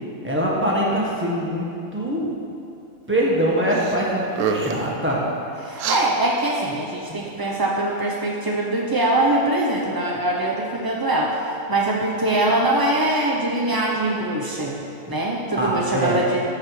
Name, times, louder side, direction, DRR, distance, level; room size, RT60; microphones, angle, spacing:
voice 1, 0.2-2.3 3.1-5.2 7.1-7.2 15.5-16.2, equal, 10° right, -5 dB, 1.4 m, -23 dB
sound 1, 3.7-4.0 4.3-4.9 5.8-6.0, right 6 dB, 70° right, 0.9 m, -26 dB
voice 2, 5.6-16.4, right 1 dB, 30° right, -3 dB, 0.4 m, -23 dB
13.5 x 4.9 x 4.8 m, 2.6 s
omnidirectional pair, 1.5 m